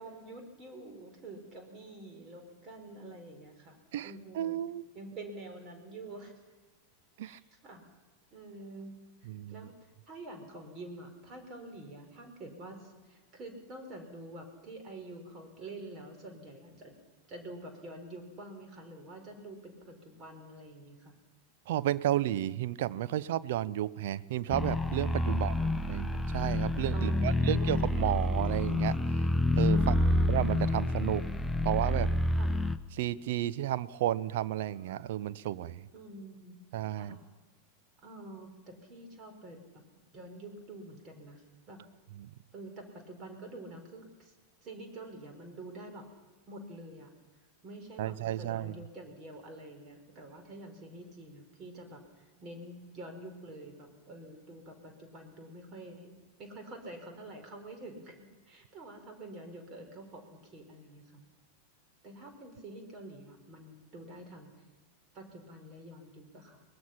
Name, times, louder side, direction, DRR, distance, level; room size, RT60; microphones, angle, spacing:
voice 1, 0.0-4.6 4.9-6.3 7.2-7.8 8.3-9.0 9.5-17.0 17.3-21.1 25.3-25.8 26.9-28.0 29.7-30.9 32.4-32.5 35.9-36.6 36.9-37.3 38.0-39.8 40.1-41.8 42.5-44.3 44.6-46.1 46.5-47.1 47.6-56.1 56.4-61.2 62.0-64.5 65.1-66.6, right 2 dB, 30° right, 5 dB, 4.5 m, -47 dB
voice 2, 3.9-4.9 7.2-7.4 9.3-9.7 21.7-25.5 25.9-29.0 29.6-29.9 30.3-31.2 31.6-32.1 32.9-35.9 36.7-37.2 42.2-42.3 48.0-48.8, right 13 dB, 55° right, 15 dB, 0.6 m, -32 dB
sound 1, 24.5-32.8, left 1 dB, 5° left, 0.8 m, -28 dB
23.0 x 20.0 x 5.8 m, 1.3 s
figure-of-eight pair, 90°, 0 cm